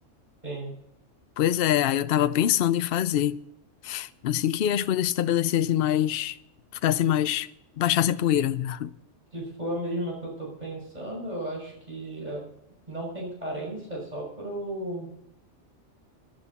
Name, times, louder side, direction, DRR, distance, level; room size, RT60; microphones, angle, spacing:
voice 1, 1.4-3.4 3.8-6.3 6.8-7.5 7.8-8.9, left 11 dB, 60° left, 0.7 m, -24 dB
voice 2, 9.3-12.4 12.9-15.1, right 1 dB, 35° right, 6.5 m, -34 dB
18.0 x 10.5 x 4.2 m
omnidirectional pair, 1.3 m